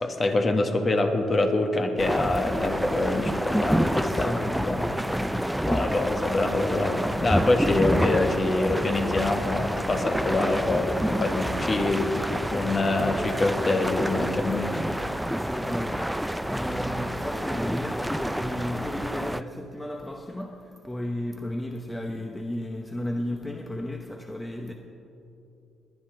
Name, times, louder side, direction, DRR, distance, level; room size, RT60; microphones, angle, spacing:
voice 1, 0.0-4.9 5.7-14.8, left 2 dB, 35° left, 5 dB, 1.3 m, -25 dB
sound 1, 2.0-19.4, equal, 5° right, 0.3 m, -28 dB
voice 2, 4.1-5.5 15.3-24.7, left 1 dB, 10° left, 3 dB, 0.8 m, -34 dB
21.0 x 9.7 x 3.9 m, 2.8 s
cardioid pair, 90°, 0 cm